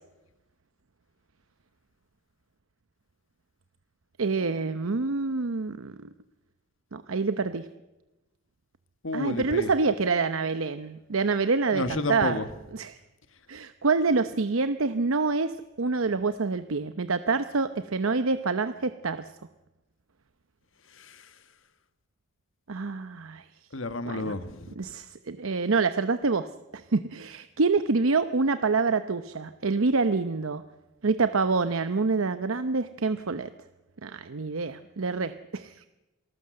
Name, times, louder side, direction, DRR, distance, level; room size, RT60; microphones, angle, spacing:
voice 1, 4.2-6.1 6.9-7.7 9.1-12.4 12.7-13.0 13.5-19.3 22.7-23.5 24.0-24.3 24.8-30.6 31.0-33.5 34.0-35.9, right 4 dB, 90° right, 11 dB, 0.8 m, -27 dB
voice 2, 9.0-9.7 11.7-12.6 20.9-21.3 23.7-24.7, left 2 dB, 75° left, 10 dB, 1.6 m, -31 dB
27.5 x 19.0 x 7.7 m, 1.0 s
head